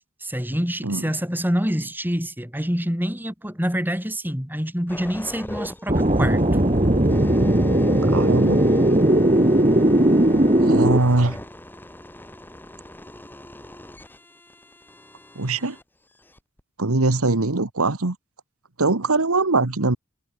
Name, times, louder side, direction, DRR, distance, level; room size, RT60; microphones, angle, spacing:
voice 1, 0.2-6.4, equal, 10° right, 6.3 m, -26 dB
sound 1, 4.9-15.8 16.4-16.6, left 1 dB, 10° left, 1.8 m, -36 dB
sound 2, 5.9-11.0, right 1 dB, 30° right, 2.0 m, -18 dB
voice 2, 8.1-8.6 10.6-11.4 15.4-15.8 16.8-18.2 18.8-20.0, right 2 dB, 85° right, 1.7 m, -21 dB
head